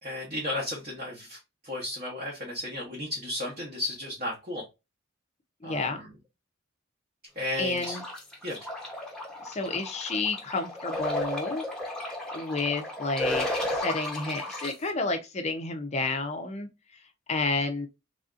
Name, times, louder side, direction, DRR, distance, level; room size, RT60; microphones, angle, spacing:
voice 1, 0.0-1.4 1.6-4.7 5.6-6.1 7.3-8.0 8.4-8.6, left 1 dB, 40° right, 0.9 m, -34 dB
voice 2, 5.6-6.0 7.6-8.0 9.4-11.6 12.3-16.7 17.3-17.9, left 3 dB, 30° left, 0.5 m, -30 dB
sound 1, 7.8-14.7, left 1 dB, 5° left, 0.8 m, -34 dB
3.3 x 2.6 x 2.4 m
head